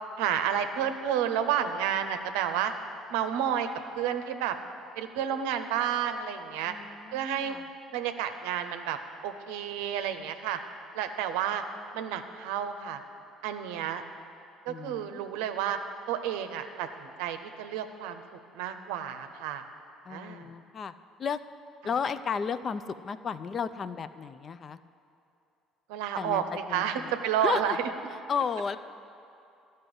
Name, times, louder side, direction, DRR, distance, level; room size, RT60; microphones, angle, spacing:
voice 1, 0.2-2.7 3.1-3.7 3.9-4.6 5.0-6.7 7.1-7.6 7.9-10.6 10.9-11.6 11.9-13.0 13.4-14.0 14.7-15.8 16.1-18.2 18.5-19.6 20.1-20.5 25.9-27.9, right 9 dB, 80° right, 8 dB, 0.6 m, -30 dB
voice 2, 6.7-7.6 14.7-15.2 20.1-20.9 21.2-21.4 21.8-24.8 26.2-26.4 26.7-27.1 27.4-27.8 28.3-28.8, left 6 dB, 45° left, 13 dB, 0.4 m, -33 dB
12.0 x 5.5 x 7.8 m, 2.7 s
hypercardioid pair, 65°, 0 cm